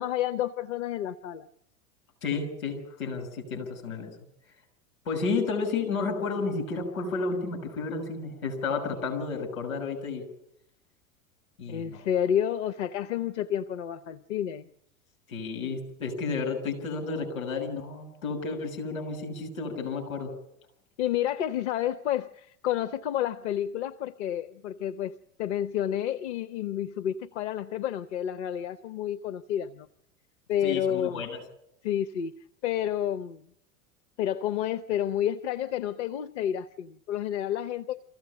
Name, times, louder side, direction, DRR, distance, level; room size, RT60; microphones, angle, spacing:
voice 1, 0.0-1.5 11.7-14.7 21.0-29.9 30.5-31.2 31.8-32.3 32.6-33.4 34.2-38.0, left 10 dB, 50° left, 11 dB, 0.9 m, -30 dB
voice 2, 2.2-4.1 5.0-10.2 11.6-12.1 15.3-20.3 30.6-31.4, left 4 dB, 70° left, 4 dB, 6.6 m, -32 dB
24.0 x 15.5 x 8.8 m, 0.78 s
figure-of-eight pair, 85°, 43 cm